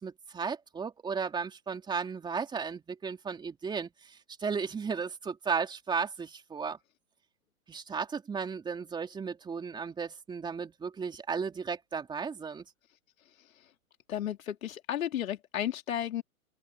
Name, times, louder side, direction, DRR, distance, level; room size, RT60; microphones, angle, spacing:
voice 1, 0.0-6.8 7.7-12.6, right 5 dB, 10° right, 3.4 m, -35 dB
voice 2, 13.4-13.7 14.1-16.2, left 11 dB, 60° left, 4.1 m, -34 dB
hypercardioid pair, 145°, 45 cm